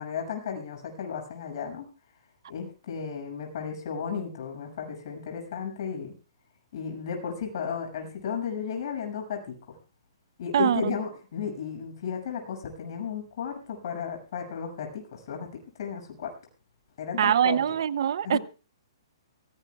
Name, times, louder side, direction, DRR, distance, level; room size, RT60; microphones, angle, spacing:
voice 1, 0.0-1.9 2.5-6.1 6.7-9.6 10.4-15.5 15.8-16.3 17.0-17.6 18.2-18.4, left 6 dB, 55° left, 3 dB, 7.0 m, -34 dB
voice 2, 10.5-10.9 17.2-18.4, right 9 dB, 65° right, 18 dB, 0.7 m, -23 dB
23.0 x 17.0 x 2.4 m, 0.34 s
hypercardioid pair, 145°, 3 cm